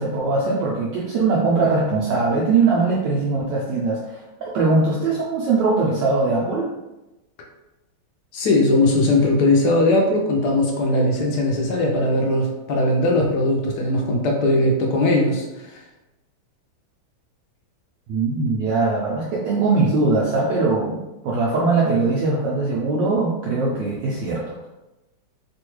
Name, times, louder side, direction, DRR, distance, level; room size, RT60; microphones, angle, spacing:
voice 1, 0.0-6.7 18.1-24.7, right 3 dB, 75° right, -4 dB, 1.1 m, -21 dB
voice 2, 8.3-15.8, left 2 dB, 75° left, 0 dB, 1.0 m, -19 dB
3.3 x 2.2 x 3.0 m, 0.99 s
omnidirectional pair, 2.1 m